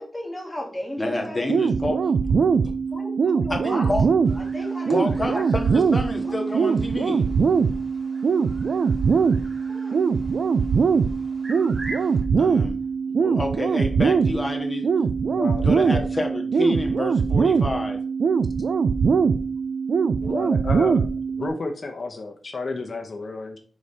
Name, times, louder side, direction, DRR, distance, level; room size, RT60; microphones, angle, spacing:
voice 1, 0.0-1.7 2.9-5.4 6.2-6.7 9.7-10.0, left 1 dB, ahead, 0 dB, 1.3 m, -35 dB
voice 2, 1.0-2.0 3.5-4.0 4.9-7.3 12.4-12.8 13.1-14.9 15.6-18.0, left 1 dB, 20° left, 2 dB, 1.2 m, -28 dB
sound 1, 1.5-21.5, right 5 dB, 90° right, 0.3 m, -22 dB
sound 2, 4.2-12.2, right 1 dB, 45° right, 2.4 m, -44 dB
voice 3, 15.3-16.1 20.2-21.1 21.4-23.6, left 3 dB, 50° left, 3 dB, 0.8 m, -31 dB
4.8 x 4.2 x 5.0 m, 0.42 s
wide cardioid pair, 160°, 0 cm